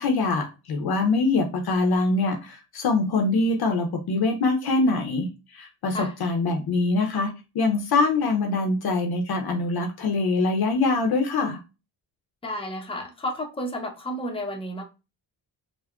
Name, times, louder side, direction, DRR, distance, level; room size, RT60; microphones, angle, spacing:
voice 1, 0.0-11.6, left 3 dB, 55° left, 0.6 m, -24 dB
voice 2, 12.4-14.8, equal, 10° left, 0.5 m, -31 dB
3.5 x 2.1 x 2.2 m
cardioid pair, 100°, 45 cm